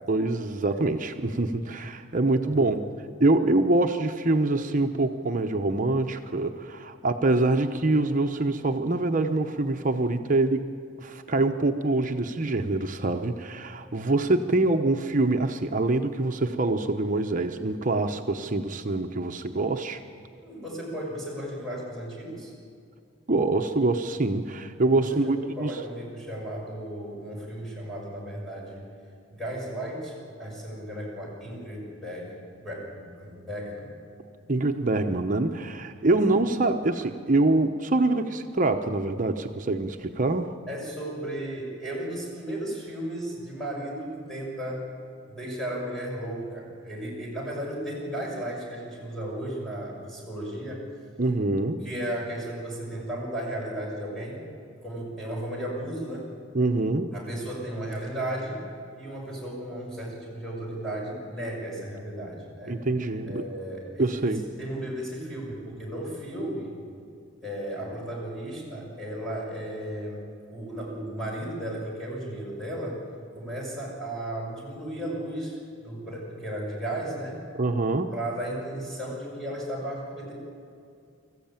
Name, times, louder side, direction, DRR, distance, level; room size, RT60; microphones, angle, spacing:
voice 1, 0.1-2.8 3.2-20.0 23.3-25.8 34.5-40.5 51.2-51.8 56.5-57.1 62.7-63.4 64.0-64.4 77.6-78.2, right 2 dB, 40° right, 5 dB, 0.8 m, -25 dB
voice 2, 2.3-2.8 20.4-22.5 25.0-28.8 29.3-30.1 30.4-33.9 34.4-34.5 36.0-36.2 40.7-44.9 45.3-50.9 51.8-54.4 54.8-56.3 57.1-58.7 58.9-62.8 63.2-66.8 67.4-70.2 70.5-73.0 73.3-77.5 78.1-80.3, right 1 dB, ahead, -4 dB, 6.0 m, -35 dB
25.0 x 15.0 x 9.0 m, 2.4 s
head